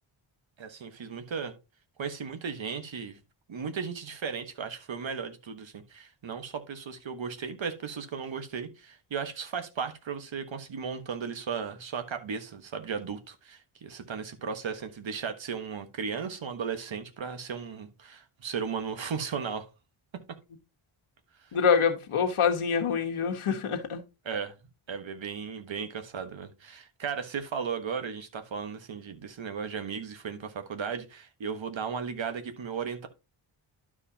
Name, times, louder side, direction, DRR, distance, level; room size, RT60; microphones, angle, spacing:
voice 1, 0.6-1.5 2.0-3.2 3.5-19.7 24.2-24.5 24.9-33.1, right 6 dB, 65° right, 1.4 m, -36 dB
voice 2, 21.5-24.0, left 6 dB, 80° left, 1.4 m, -25 dB
12.0 x 4.9 x 2.8 m
wide cardioid pair, 85°, 50 cm